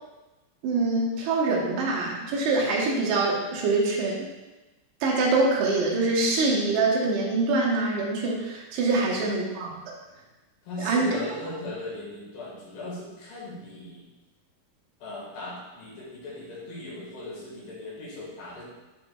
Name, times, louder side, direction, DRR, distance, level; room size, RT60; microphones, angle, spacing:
voice 1, 0.6-4.2 5.0-9.7 10.8-11.2, right 3 dB, 90° right, -3 dB, 3.1 m, -24 dB
voice 2, 9.0-9.4 10.6-14.1 15.0-18.7, left 2 dB, 90° left, -5 dB, 3.8 m, -38 dB
9.9 x 4.0 x 2.3 m, 1.1 s
omnidirectional pair, 4.5 m